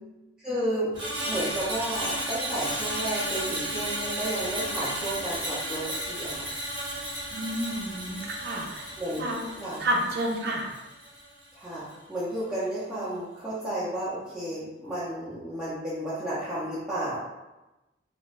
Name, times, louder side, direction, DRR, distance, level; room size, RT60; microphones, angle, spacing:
voice 1, 0.4-0.9 1.2-6.5 9.0-9.3 9.6-9.8 11.5-11.8 12.1-17.2, right 1 dB, 5° right, -12 dB, 0.6 m, -32 dB
Screech, 0.9-11.3 11.6-11.9, right 1 dB, 25° right, 0.9 m, -34 dB
voice 2, 7.3-8.9 9.2-9.5 9.8-10.7, right 1 dB, 60° right, 1 dB, 0.5 m, -30 dB
2.5 x 2.3 x 3.1 m, 1.0 s
head